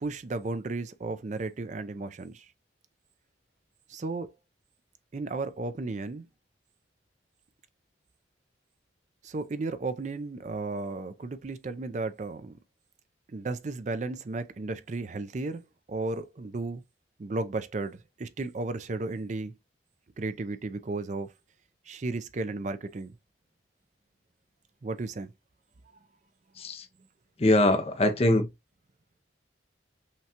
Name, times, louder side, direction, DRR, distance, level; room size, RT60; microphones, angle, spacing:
voice 1, 0.0-2.5 3.9-4.3 5.1-6.3 9.2-12.6 13.3-15.6 15.9-16.8 17.2-19.5 20.2-21.3 21.9-23.1 24.8-25.3, right 3 dB, 40° right, 0.4 m, -34 dB
voice 2, 27.4-28.5, left 1 dB, 30° left, 0.6 m, -22 dB
5.7 x 2.3 x 2.8 m
head